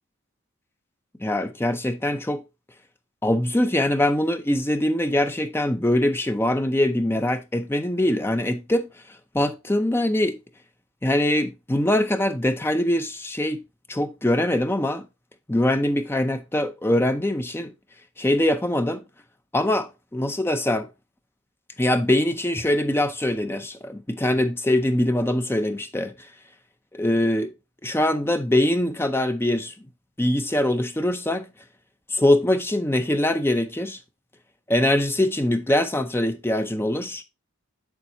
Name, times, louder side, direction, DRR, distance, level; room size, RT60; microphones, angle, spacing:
voice 1, 1.2-2.4 3.2-8.9 9.3-10.4 11.0-13.6 13.9-15.0 15.5-17.7 18.2-19.0 19.5-20.9 21.8-26.1 26.9-27.5 27.8-29.7 30.2-31.5 32.1-34.0 34.7-37.2, left 1 dB, 10° left, 0.6 m, -23 dB
7.3 x 7.1 x 2.7 m
head